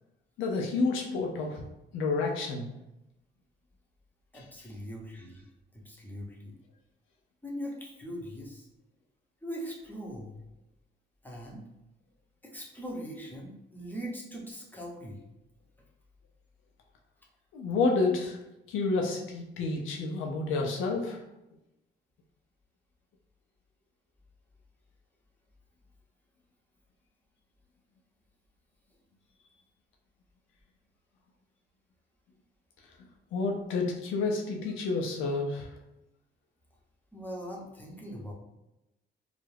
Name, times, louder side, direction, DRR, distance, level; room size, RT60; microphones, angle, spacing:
voice 1, 0.4-1.6 1.9-2.7 4.3-4.4 17.5-18.4 18.7-21.2 33.3-35.7, left 3 dB, 85° left, 1 dB, 0.5 m, -29 dB
voice 2, 4.3-6.6 7.4-8.7 9.4-10.3 11.2-11.6 12.4-15.2 37.1-38.3, equal, 10° left, -2 dB, 0.7 m, -41 dB
2.3 x 2.0 x 3.2 m, 0.89 s
cardioid pair, 90°, 20 cm